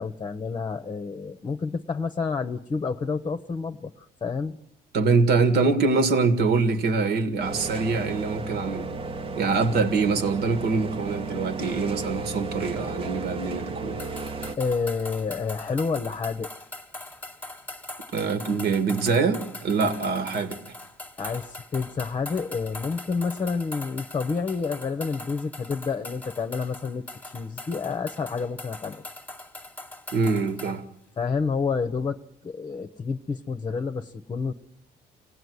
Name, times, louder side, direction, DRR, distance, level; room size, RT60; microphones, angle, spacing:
voice 1, 0.0-4.6 14.6-16.5 21.2-29.0 31.2-34.5, left 5 dB, 25° left, 0.9 m, -29 dB
voice 2, 4.9-8.9 9.4-14.0 18.1-20.6 30.1-30.8, right 4 dB, 70° right, 2.1 m, -24 dB
sound 1, 7.4-14.6, right 3 dB, 35° right, 1.1 m, -34 dB
sound 2, 14.0-30.8, left 2 dB, 10° left, 1.4 m, -41 dB
24.5 x 17.0 x 9.5 m
cardioid pair, 110°, 17 cm